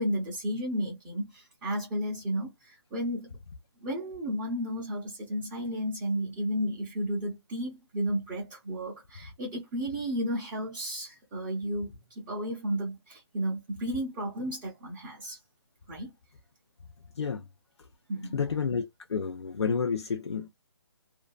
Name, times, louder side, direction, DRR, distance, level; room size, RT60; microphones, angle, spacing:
voice 1, 0.0-3.4 3.8-15.4 15.9-16.1 18.1-18.5, equal, 15° right, 0.7 m, -33 dB
voice 2, 18.3-20.5, left 6 dB, 85° left, 0.5 m, -30 dB
2.6 x 2.2 x 2.2 m
hypercardioid pair, 160°, 14 cm